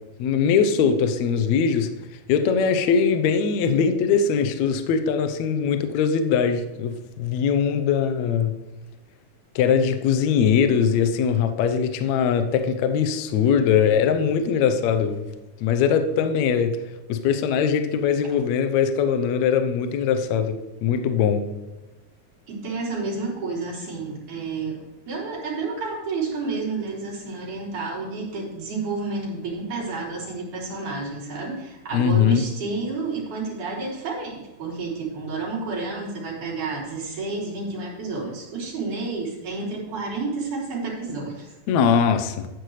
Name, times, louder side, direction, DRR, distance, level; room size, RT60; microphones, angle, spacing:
voice 1, 0.2-1.9 2.3-8.5 9.6-15.2 15.6-16.8 17.1-21.4 31.9-32.4 41.7-42.5, left 7 dB, 70° left, 8 dB, 1.9 m, -21 dB
voice 2, 22.5-24.8 25.1-41.5, right 3 dB, 65° right, -6 dB, 5.1 m, -30 dB
13.0 x 9.3 x 3.2 m, 1.1 s
omnidirectional pair, 3.8 m